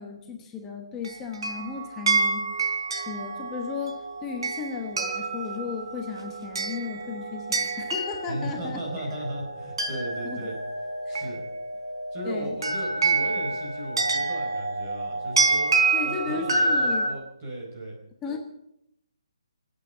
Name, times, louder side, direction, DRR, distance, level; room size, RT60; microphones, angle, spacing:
voice 1, 0.0-2.5 2.9-8.8 10.2-10.5 11.1-11.2 12.2-12.6 15.9-17.1 18.2-18.4, left 6 dB, 10° left, 3 dB, 1.1 m, -35 dB
sound 1, 1.0-17.1, right 3 dB, 60° right, 3.8 m, -28 dB
voice 2, 8.3-10.6 11.1-11.4 12.1-15.7 16.0-18.0, right 1 dB, 20° right, -1 dB, 4.7 m, -35 dB
23.5 x 8.9 x 6.9 m, 0.78 s
hypercardioid pair, 175°, 3 cm